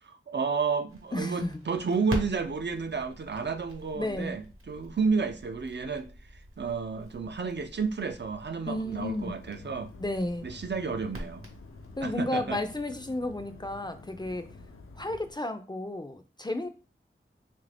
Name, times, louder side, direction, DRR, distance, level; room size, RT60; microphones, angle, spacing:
voice 1, 0.0-9.9 10.4-11.4 12.0-12.6, right 5 dB, 55° right, 0.4 m, -31 dB
Crackle, 0.9-12.1, right 1 dB, 85° right, 0.9 m, -44 dB
voice 2, 1.1-1.5 3.9-4.4 8.7-9.3 10.0-10.5 12.0-14.5 15.0-16.7, left 1 dB, 20° left, 0.4 m, -32 dB
sound 1, 8.8-15.3, left 3 dB, 75° left, 0.5 m, -49 dB
3.2 x 2.5 x 3.3 m
wide cardioid pair, 40°, 21 cm